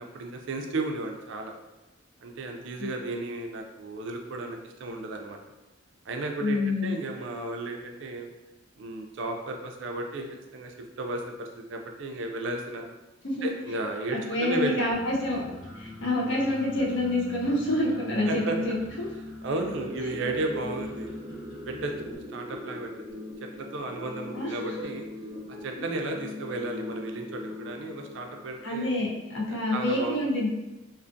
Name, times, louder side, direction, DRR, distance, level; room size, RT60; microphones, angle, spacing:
voice 1, 0.0-1.5 2.2-5.4 6.1-8.3 8.8-10.3 10.5-12.8 13.4-14.8 16.4-16.5 18.3-18.6 19.4-21.1 21.7-22.9 23.4-25.0 25.6-28.9 29.5-30.2, right 2 dB, 60° right, 3 dB, 0.4 m, -34 dB
voice 2, 6.4-7.0 13.2-13.5 14.1-15.5 15.8-19.1 24.3-24.8 25.5-25.7 28.6-30.5, left 1 dB, 60° left, -3 dB, 0.6 m, -27 dB
sound 1, 14.9-22.1, left 1 dB, 35° left, 1.1 m, -44 dB
sound 2, 19.9-28.9, left 1 dB, 25° right, 0.7 m, -40 dB
2.4 x 2.3 x 2.5 m, 1.0 s
head